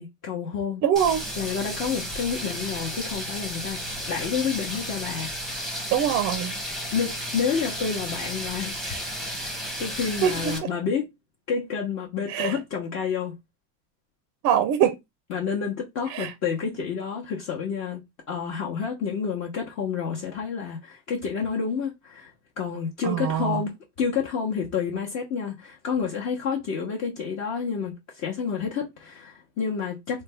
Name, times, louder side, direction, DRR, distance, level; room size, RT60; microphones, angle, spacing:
voice 1, 0.0-0.8 1.4-3.8 4.1-5.7 6.9-9.1 9.8-11.0 11.5-13.3 15.3-18.0 18.3-23.7 24.0-30.2, left 6 dB, 45° left, 0.9 m, -29 dB
voice 2, 0.8-1.2 5.9-6.6 10.2-10.7 12.3-12.6 14.4-15.0 16.1-16.3 23.0-23.6, right 9 dB, 45° right, 0.4 m, -23 dB
sound 1, 1.0-10.6, equal, ahead, 0.8 m, -33 dB
3.3 x 2.2 x 3.3 m
supercardioid pair, 140°, 40 cm